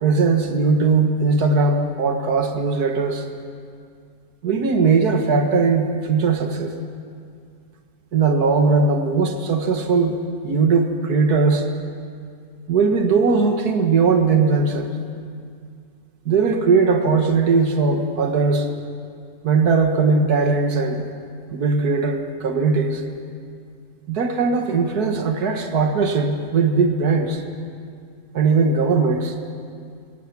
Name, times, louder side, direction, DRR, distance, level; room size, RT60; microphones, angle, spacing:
voice 1, 0.0-3.3 4.4-6.8 8.1-10.2 10.4-11.7 12.7-14.9 16.3-18.7 19.4-21.1 21.5-23.0 24.1-27.4 28.3-29.3, right 4 dB, 85° right, 5 dB, 1.9 m, -19 dB
27.0 x 16.5 x 6.0 m, 2.3 s
omnidirectional pair, 1.6 m